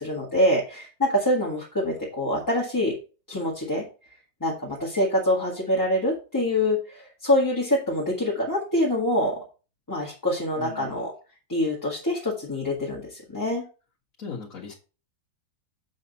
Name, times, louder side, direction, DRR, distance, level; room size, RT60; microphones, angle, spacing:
voice 1, 0.0-2.9 3.3-3.8 4.4-9.4 9.9-11.1 11.5-13.6, left 1 dB, 10° left, -4 dB, 1.6 m, -25 dB
voice 2, 10.6-11.1 14.2-14.7, left 5 dB, 45° left, -3 dB, 1.8 m, -38 dB
7.4 x 6.3 x 4.1 m, 0.34 s
omnidirectional pair, 2.1 m